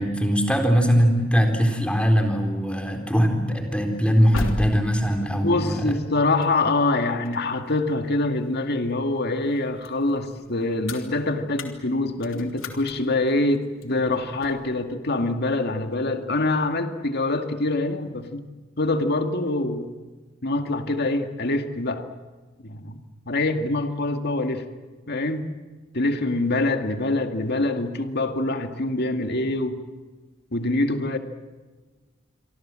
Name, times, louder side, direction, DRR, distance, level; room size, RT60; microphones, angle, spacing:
voice 1, 0.0-5.9, equal, 5° left, 4 dB, 4.1 m, -21 dB
sound 1, 3.9-8.9 9.3-14.8, left 1 dB, 75° left, 3.2 m, -37 dB
voice 2, 5.3-18.4 18.8-19.9 20.4-22.1 22.6-23.0 23.3-24.7 25.1-25.5 25.9-29.8 30.5-31.2, left 2 dB, 55° left, 6 dB, 2.2 m, -25 dB
28.5 x 24.0 x 7.7 m, 1.4 s
head